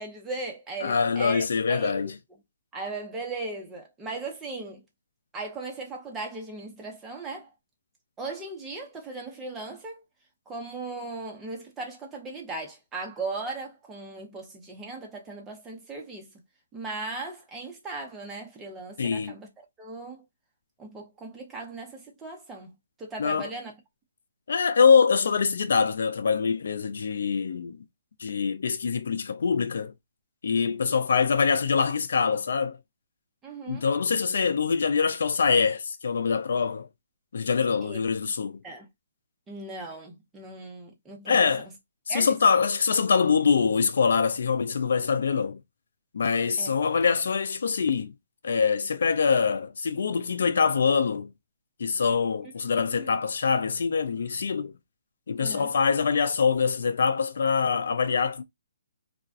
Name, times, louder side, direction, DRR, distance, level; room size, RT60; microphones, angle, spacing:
voice 1, 0.0-2.1 2.7-4.8 5.3-7.5 8.2-10.0 10.5-16.3 16.7-19.5 19.8-20.2 20.8-22.7 23.0-23.7 33.4-33.9 37.8-38.0 38.6-38.9 39.5-41.5 42.1-42.4 46.6-46.7 52.9-53.1 55.4-55.7, right 3 dB, 15° right, 0.7 m, -37 dB
voice 2, 0.8-2.1 19.0-19.3 23.2-23.5 24.5-27.8 28.2-29.9 30.4-32.8 33.7-36.9 37.3-38.6 41.3-41.7 42.1-45.6 46.1-48.1 48.4-51.3 51.8-54.7 55.3-58.4, left 5 dB, 70° left, 0.3 m, -24 dB
2.4 x 2.2 x 2.4 m
hypercardioid pair, 150°, 0 cm